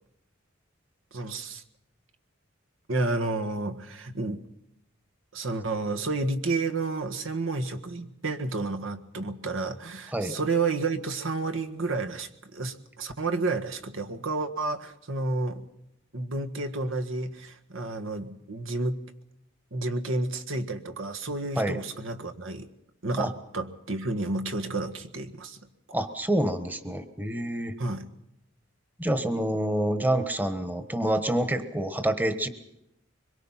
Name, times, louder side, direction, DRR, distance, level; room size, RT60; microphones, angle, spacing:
voice 1, 1.1-1.6 2.9-4.4 5.3-15.6 16.1-19.0 19.7-22.7 23.0-25.6 25.9-26.0 27.8-28.1, right 3 dB, 80° right, 5 dB, 1.7 m, -31 dB
voice 2, 25.9-27.7 29.0-32.5, right 1 dB, 10° right, 10 dB, 1.3 m, -27 dB
24.5 x 22.5 x 5.8 m, 0.81 s
head